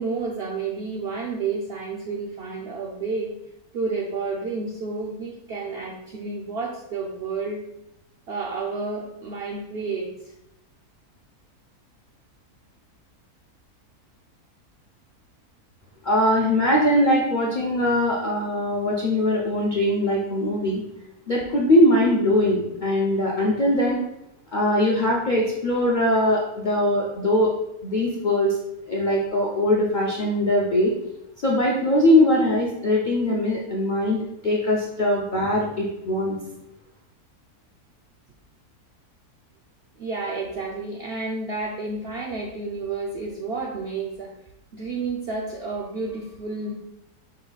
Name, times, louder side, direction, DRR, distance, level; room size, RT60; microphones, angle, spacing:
voice 1, 0.0-3.4 3.7-7.6 8.3-10.3 40.0-44.3 44.7-46.7, right 4 dB, 70° right, -1 dB, 0.6 m, -30 dB
voice 2, 16.0-20.8 21.3-24.0 24.5-27.5 27.8-28.6 28.9-30.9 31.4-36.4, left 1 dB, 60° left, -3 dB, 0.4 m, -21 dB
5.3 x 2.3 x 3.9 m, 0.84 s
omnidirectional pair, 1.6 m